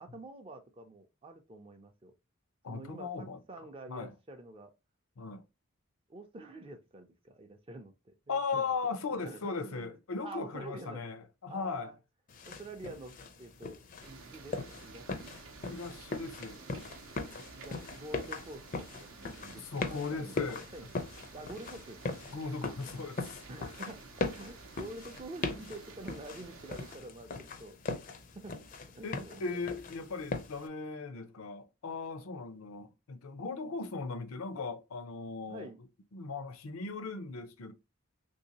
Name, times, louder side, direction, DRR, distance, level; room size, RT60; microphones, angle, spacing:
voice 1, 0.0-2.1 2.7-4.7 6.1-8.7 9.1-10.0 10.2-11.1 11.5-12.0 12.4-15.4 17.6-20.9 21.3-22.2 23.5-28.0 28.3-28.6 28.9-29.5 35.5-35.8, right 2 dB, 25° right, 0.4 m, -48 dB
voice 2, 2.6-4.1 5.2-5.4 8.3-11.9 15.6-16.6 19.6-20.6 22.3-23.4 29.0-35.7 36.1-37.7, left 4 dB, 85° left, 0.6 m, -38 dB
sound 1, 12.3-30.7, left 3 dB, 40° left, 0.4 m, -40 dB
sound 2, 14.0-27.0, right 5 dB, 75° right, 0.6 m, -52 dB
3.2 x 2.7 x 2.8 m
head